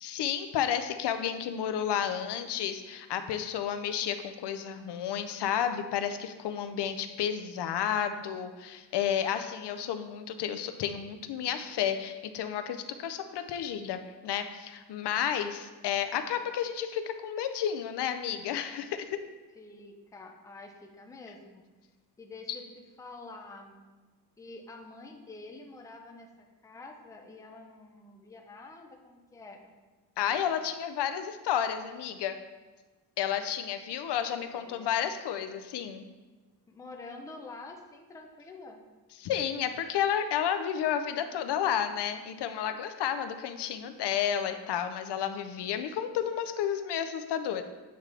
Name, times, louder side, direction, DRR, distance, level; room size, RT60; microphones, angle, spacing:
voice 1, 0.0-19.2 30.2-32.4 33.2-36.0 39.2-47.6, left 9 dB, 80° left, 9 dB, 0.5 m, -31 dB
voice 2, 19.6-21.6 22.2-23.8 24.4-26.3 26.6-29.7 34.5-34.9 36.7-38.8, left 3 dB, 10° left, 2 dB, 0.4 m, -47 dB
8.0 x 3.7 x 3.2 m, 1.3 s
wide cardioid pair, 165°, 40 cm